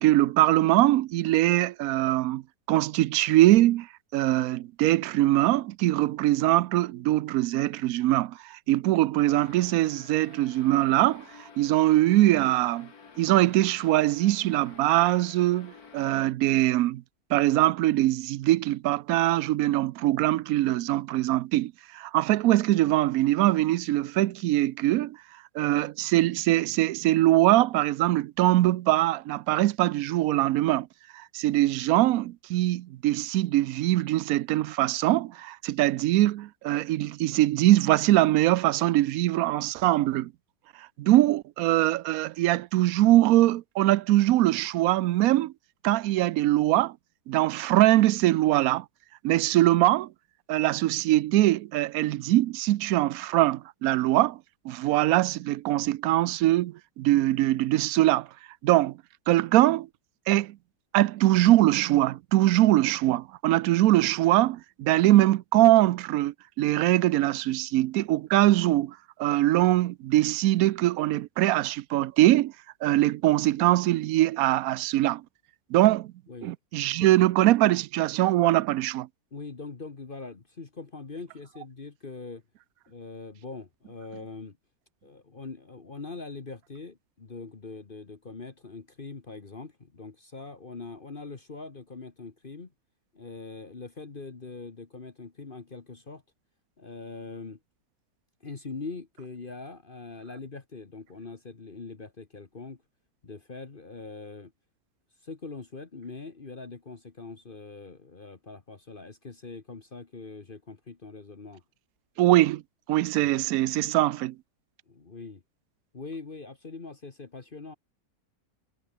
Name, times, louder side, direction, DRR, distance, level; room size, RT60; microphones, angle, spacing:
voice 1, 0.0-2.4 2.7-3.9 4.1-11.2 11.6-12.9 13.2-17.0 17.3-25.2 25.5-30.9 31.1-40.3 41.0-45.5 45.8-46.9 47.3-48.8 49.2-50.1 50.5-54.4 54.6-58.3 58.6-59.0 59.3-59.9 60.3-60.6 60.9-72.5 72.8-75.2 75.7-76.1 76.4-79.1 112.2-112.6 112.9-114.3, right 15 dB, 75° right, 1.0 m, -22 dB
sound 1, 9.3-16.3, left 5 dB, 85° left, 2.6 m, -51 dB
voice 2, 79.3-82.4 82.9-84.6 85.0-92.7 93.1-96.2 96.8-97.6 98.4-102.8 103.2-104.5 105.2-111.6 113.2-113.3 114.9-115.4 115.9-117.7, left 4 dB, 35° left, 1.6 m, -42 dB
omnidirectional pair, 1.5 m